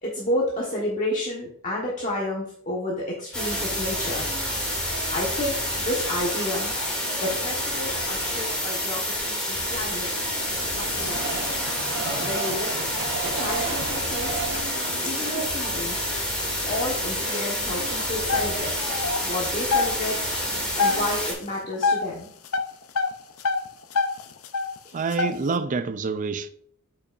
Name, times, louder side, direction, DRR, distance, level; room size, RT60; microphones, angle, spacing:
voice 1, 0.0-4.3 5.1-5.6 5.8-6.7 7.2-10.1 10.5-11.4 12.2-12.8 13.3-14.4 15.0-16.0 16.6-18.9 19.2-20.3 20.8-22.3, left 1 dB, 35° left, 1.3 m, -31 dB
sound 1, 3.3-21.3, equal, 5° left, 2.4 m, -28 dB
Train, 9.5-16.6 17.1-17.2 17.4-17.5, right 5 dB, 55° right, 0.9 m, -35 dB
sound 2, 10.8-16.9 17.3-17.4 17.7-20.0 20.3-21.0 21.3-22.1 22.4-24.8 25.1-25.5, left 4 dB, 70° left, 0.6 m, -28 dB
voice 2, 24.9-26.5, right 4 dB, 35° right, 0.4 m, -27 dB
8.3 x 5.7 x 2.5 m
head